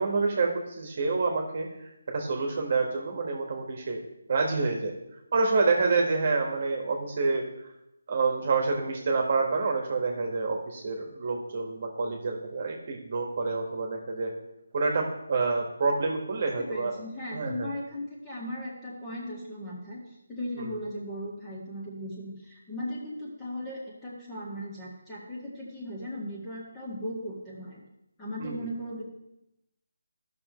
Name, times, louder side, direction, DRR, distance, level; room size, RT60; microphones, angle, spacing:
voice 1, 0.0-1.7 2.1-4.0 4.3-4.9 5.3-7.4 8.1-14.3 14.7-16.9 17.3-17.7 28.4-28.5, right 3 dB, 45° right, 2 dB, 1.6 m, -27 dB
voice 2, 16.6-27.8 28.2-29.0, left 1 dB, 10° left, -6 dB, 2.0 m, -37 dB
13.0 x 6.1 x 3.1 m, 0.88 s
figure-of-eight pair, 165°, 0 cm